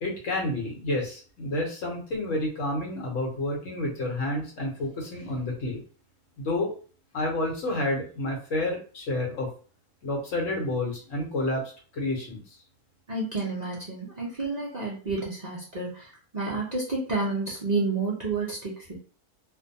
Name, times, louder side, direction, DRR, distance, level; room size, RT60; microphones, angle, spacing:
voice 1, 0.0-5.8 6.4-6.7 7.1-9.5 10.0-12.4, left 1 dB, 60° left, -1 dB, 1.1 m, -29 dB
voice 2, 13.1-19.0, right 3 dB, 70° right, -5 dB, 0.4 m, -30 dB
2.5 x 2.1 x 2.6 m, 0.40 s
omnidirectional pair, 1.6 m